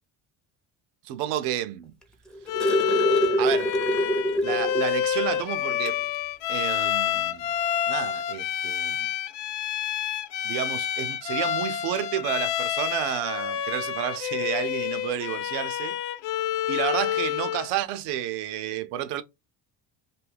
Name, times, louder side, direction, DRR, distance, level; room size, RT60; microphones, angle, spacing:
voice 1, 1.0-1.9 3.4-3.7 4.4-6.0 6.5-7.5 7.9-9.0 10.4-16.0 16.7-19.2, right 11 dB, 80° right, 0.6 m, -30 dB
sound 1, 2.0-4.9 5.3-5.4 5.8-6.0 7.1-7.2, right 1 dB, ahead, 0.6 m, -25 dB
Bowed string instrument, 2.5-17.7, left 11 dB, 70° left, 0.5 m, -28 dB
2.6 x 2.3 x 3.3 m
supercardioid pair, 90°, 41 cm